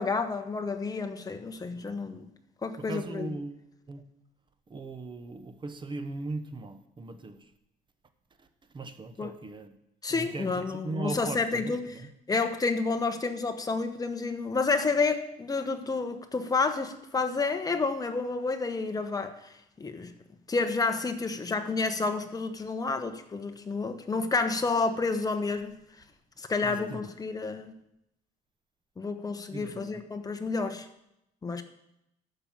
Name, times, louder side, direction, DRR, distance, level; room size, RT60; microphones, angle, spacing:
voice 1, 0.0-2.3 2.6-3.3 9.2-9.3 10.0-11.9 12.3-20.1 20.5-25.8 26.4-27.8 29.0-30.9 31.4-31.6, left 4 dB, 20° left, 7 dB, 1.1 m, -30 dB
voice 2, 1.7-2.2 2.8-4.0 4.7-7.5 8.4-8.5 8.7-9.8 10.1-12.1 26.6-27.1 29.5-30.0, right 3 dB, 30° right, 9 dB, 1.1 m, -39 dB
11.5 x 5.5 x 7.5 m, 0.83 s
cardioid pair, 110°, 17 cm